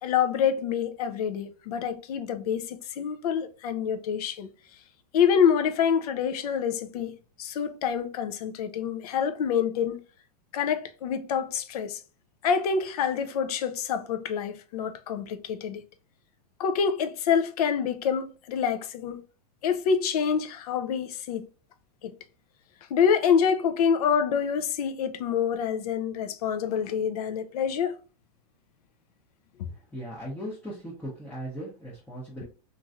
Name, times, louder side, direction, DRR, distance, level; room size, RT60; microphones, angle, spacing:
voice 1, 0.0-4.5 5.1-10.0 10.5-12.0 12.4-15.8 16.6-19.2 19.6-21.4 22.0-22.1 22.9-28.0, left 7 dB, 70° left, 0.5 m, -26 dB
voice 2, 29.7-32.4, equal, 5° left, 0.7 m, -38 dB
2.9 x 2.5 x 2.4 m
supercardioid pair, 140°, 21 cm